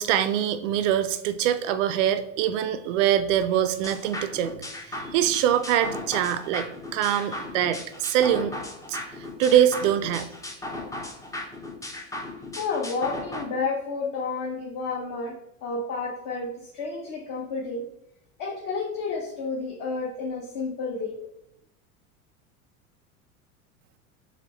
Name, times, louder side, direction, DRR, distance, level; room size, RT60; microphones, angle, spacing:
voice 1, 0.0-4.5 4.8-8.5 8.9-10.3, right 10 dB, 60° right, 11 dB, 0.5 m, -24 dB
sound 1, 3.8-13.4, left 1 dB, 10° left, 0.4 m, -37 dB
voice 2, 12.6-15.3 15.6-17.8 18.4-21.1, left 4 dB, 45° left, -2 dB, 1.0 m, -30 dB
4.3 x 3.0 x 2.9 m, 0.79 s
hypercardioid pair, 85°, 43 cm